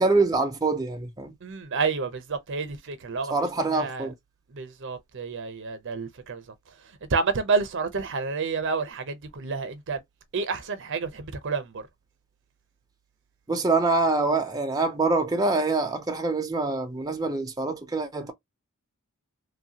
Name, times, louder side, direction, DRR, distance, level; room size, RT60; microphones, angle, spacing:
voice 1, 0.0-1.3 3.3-4.1 13.5-18.3, right 3 dB, 15° right, 0.5 m, -25 dB
voice 2, 1.4-3.3 3.7-4.1 4.5-6.4 7.1-10.0 10.3-11.9, right 4 dB, 60° right, 0.7 m, -29 dB
3.1 x 2.3 x 2.7 m
head